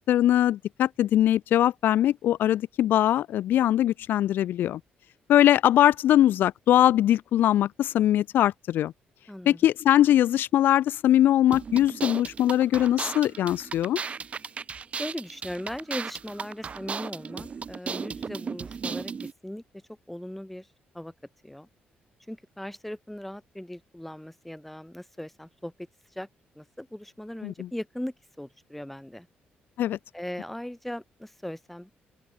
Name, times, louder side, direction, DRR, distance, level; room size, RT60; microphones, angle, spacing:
voice 1, 0.0-4.8 5.3-8.9 9.5-14.0 27.4-27.7 29.8-30.0, left 12 dB, 75° left, 0.5 m, -21 dB
voice 2, 9.3-9.6 15.0-19.1 19.4-19.6 20.1-20.7 20.9-21.1 21.4-21.7 22.3-25.7 26.1-26.3 26.6-29.3 30.1-31.9, left 1 dB, 5° left, 3.6 m, -38 dB
sound 1, 11.5-19.3, right 6 dB, 40° right, 0.7 m, -36 dB
open air
cardioid pair, 105°, 3 cm